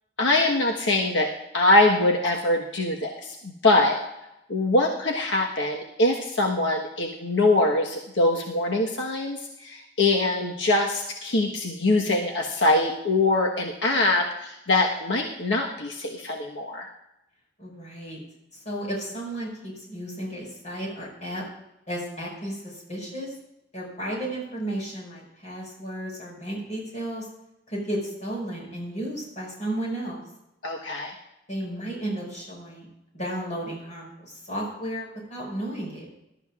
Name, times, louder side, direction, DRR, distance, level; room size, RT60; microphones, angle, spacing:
voice 1, 0.2-1.3 1.5-4.0 4.5-16.9 30.6-31.1, left 2 dB, 85° left, 0 dB, 1.3 m, -23 dB
voice 2, 17.6-18.2 18.5-21.4 21.9-23.3 23.7-27.3 27.7-30.2 31.5-32.9 33.1-36.1, right 1 dB, 40° left, -2 dB, 5.7 m, -33 dB
20.0 x 12.5 x 2.5 m, 0.84 s
head